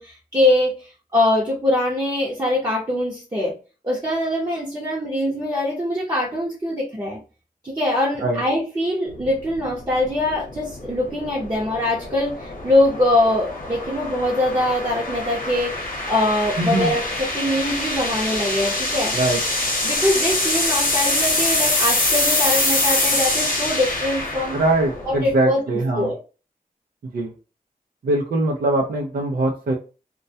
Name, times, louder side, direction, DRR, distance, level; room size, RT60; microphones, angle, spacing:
voice 1, 0.0-3.5 3.8-7.2 7.6-19.1 19.8-24.6 25.1-25.6 25.9-26.1, left 1 dB, 25° right, -5 dB, 0.7 m, -23 dB
sound 1, 9.1-25.4, left 2 dB, 65° left, 0.8 m, -25 dB
voice 2, 16.6-16.9 19.1-19.4 24.5-26.1 27.1-27.3 28.0-29.7, right 2 dB, 80° right, -2 dB, 0.5 m, -22 dB
2.2 x 2.1 x 2.6 m, 0.34 s
wide cardioid pair, 80°, 15 cm